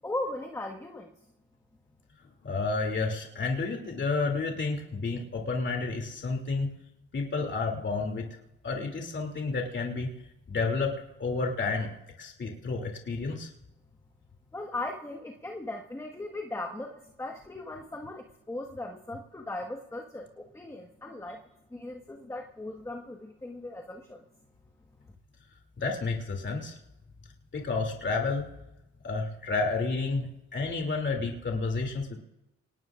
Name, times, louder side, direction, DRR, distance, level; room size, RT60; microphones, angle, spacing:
voice 1, 0.0-1.1 14.5-21.4 21.7-24.2, left 2 dB, 10° left, 2 dB, 1.5 m, -38 dB
voice 2, 2.4-6.7 7.1-8.3 8.6-10.1 10.5-10.9 11.2-11.9 12.2-13.5 25.8-26.8 27.5-28.5 29.0-32.2, left 3 dB, 40° left, 1 dB, 2.8 m, -30 dB
25.0 x 19.0 x 2.5 m, 0.92 s
cardioid pair, 90°, 30 cm